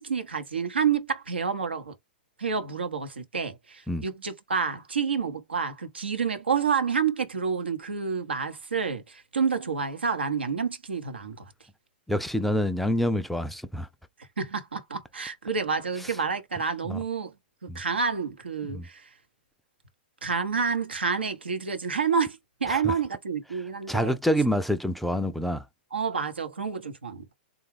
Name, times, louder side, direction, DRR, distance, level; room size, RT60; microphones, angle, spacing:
voice 1, 0.0-1.9 2.4-11.5 14.2-17.3 17.6-19.1 20.2-24.2 25.9-27.3, right 6 dB, 90° right, 0.9 m, -29 dB
voice 2, 12.1-13.9 16.9-17.0 17.7-17.8 18.7-18.8 22.7-22.9 23.9-25.6, equal, ahead, 0.3 m, -27 dB
3.5 x 2.3 x 3.2 m
hypercardioid pair, 115°, 6 cm